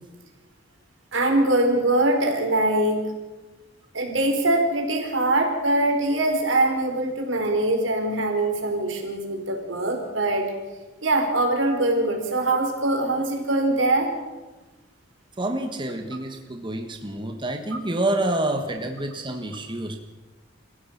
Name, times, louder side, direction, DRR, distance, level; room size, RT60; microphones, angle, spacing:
voice 1, 1.1-3.1 3.9-10.5 11.0-14.1, right 2 dB, 85° right, 3 dB, 4.6 m, -23 dB
voice 2, 15.4-20.0, right 1 dB, 25° right, 4 dB, 1.6 m, -28 dB
28.0 x 15.5 x 6.0 m, 1.2 s
head